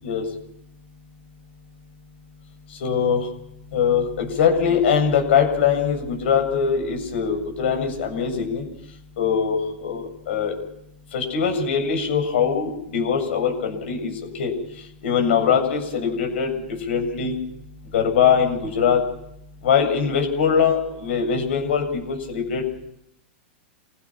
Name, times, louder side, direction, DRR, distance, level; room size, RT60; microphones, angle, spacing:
voice 1, 2.8-3.3 3.7-8.6 9.2-10.5 11.1-14.1 14.4-14.5 15.0-16.6 16.9-17.3 17.9-19.0 19.6-22.6, left 7 dB, 70° left, 4 dB, 7.6 m, -22 dB
28.5 x 17.0 x 5.9 m, 0.77 s
hypercardioid pair, 140°, 7 cm